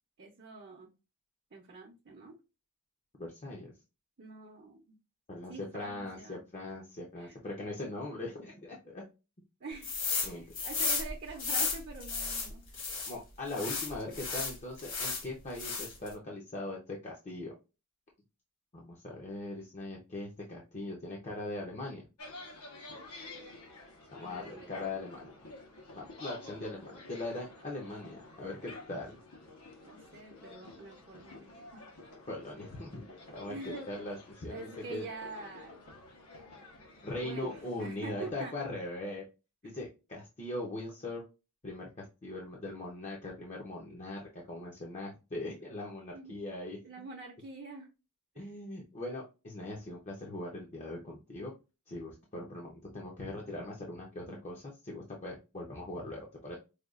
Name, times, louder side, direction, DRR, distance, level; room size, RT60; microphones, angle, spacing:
voice 1, 0.2-0.9 1.5-2.3 4.2-5.0 5.5-6.4 7.2-7.4 9.6-12.6 14.3-14.5 24.2-24.9 27.6-27.7 29.8-31.8 33.5-33.9 34.5-35.8 37.2-38.5 44.6-44.7 46.1-46.3 46.8-47.9 48.3-48.5, right 4 dB, 45° right, 0 dB, 0.7 m, -46 dB
voice 2, 3.2-3.7 5.3-9.1 10.2-10.4 13.0-17.5 18.7-22.1 24.1-25.3 25.9-29.2 32.3-33.0 33.3-34.6 34.9-35.1 37.0-39.3 39.6-41.2 41.6-46.8 48.4-51.5 51.9-56.6, left 2 dB, 30° left, -1 dB, 0.6 m, -40 dB
sound 1, 9.8-10.3 10.5-13.1 13.5-15.2 15.6-16.1, left 4 dB, 60° left, 1.5 m, -33 dB
sound 2, 22.2-38.3, left 2 dB, 80° left, 1.0 m, -50 dB
4.9 x 2.3 x 2.3 m, 0.29 s
head